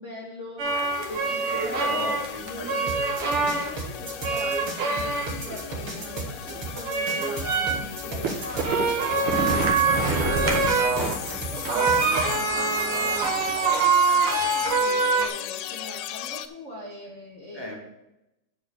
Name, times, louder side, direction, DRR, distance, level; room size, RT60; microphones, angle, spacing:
voice 1, 0.0-2.1 2.4-9.5 9.8-10.5 11.5-17.8, equal, 40° left, -3 dB, 1.5 m, -41 dB
sound 1, 0.6-3.8 4.2-5.6 6.0-15.3, right 4 dB, 85° right, 2.2 m, -24 dB
sound 2, 0.7-16.5, left 11 dB, 80° left, 1.0 m, -37 dB
voice 2, 1.8-3.0 10.0-11.7 17.5-17.8, equal, 15° right, -2 dB, 1.5 m, -35 dB
sound 3, 2.9-12.4, right 3 dB, 50° right, 2.6 m, -35 dB
9.3 x 4.5 x 6.8 m, 0.90 s
omnidirectional pair, 2.4 m